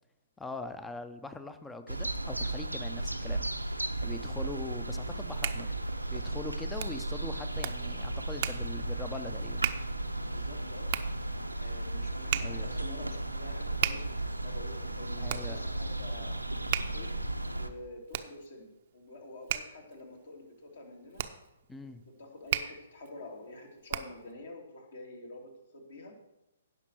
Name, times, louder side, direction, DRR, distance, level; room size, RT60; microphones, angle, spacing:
voice 1, 0.4-3.5 4.0-5.8 6.1-9.6 12.3-12.8 15.2-15.6 21.7-22.0, left 2 dB, 5° left, 11 dB, 0.7 m, -42 dB
sound 1, 1.9-17.7, right 2 dB, 90° right, 0.8 m, -35 dB
Hands, 5.0-24.3, right 11 dB, 40° right, 0.7 m, -38 dB
voice 2, 10.3-10.9 11.6-16.4 16.9-17.1 17.4-18.7 18.9-21.2 21.8-21.9 22.2-26.2, left 2 dB, 55° left, 1 dB, 2.8 m, -47 dB
16.5 x 5.9 x 4.6 m, 0.91 s
figure-of-eight pair, 125°, 0 cm